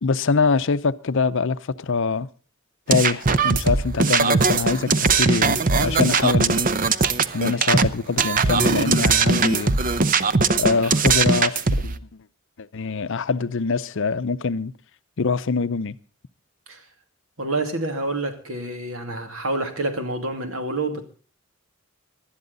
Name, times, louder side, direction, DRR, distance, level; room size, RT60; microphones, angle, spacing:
voice 1, 0.0-2.3 2.9-6.6 7.3-9.7 10.5-12.0 12.6-14.7 15.2-16.0, left 4 dB, 60° left, 0.6 m, -24 dB
sound 1, 2.9-7.9 8.2-12.0, right 4 dB, 40° right, 0.7 m, -20 dB
voice 2, 17.4-21.1, right 2 dB, 75° right, 2.6 m, -28 dB
19.0 x 12.0 x 4.0 m
head